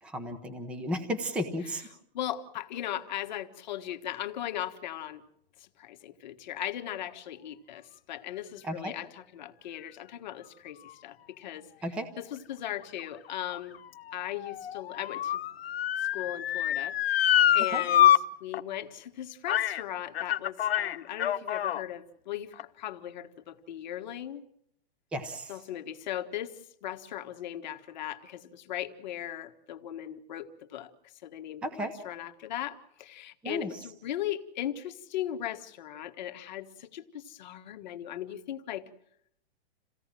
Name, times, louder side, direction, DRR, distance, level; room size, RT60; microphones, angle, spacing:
voice 1, 0.0-1.9 8.6-8.9 11.8-12.1 17.7-17.8 25.1-25.6 31.6-31.9 33.4-33.9, equal, 5° right, 9 dB, 0.8 m, -34 dB
voice 2, 2.1-5.2 5.6-11.7 12.2-13.8 14.1-15.4 16.1-18.1 18.4-24.4 25.5-30.9 31.2-38.8, left 12 dB, 45° left, 7 dB, 1.5 m, -38 dB
Motor vehicle (road) / Siren, 13.0-18.2 18.5-18.6 19.5-19.8 20.1-21.8 22.5-22.6, left 11 dB, 65° left, 1.1 m, -26 dB
28.0 x 17.0 x 7.5 m, 0.75 s
hypercardioid pair, 175°, 32 cm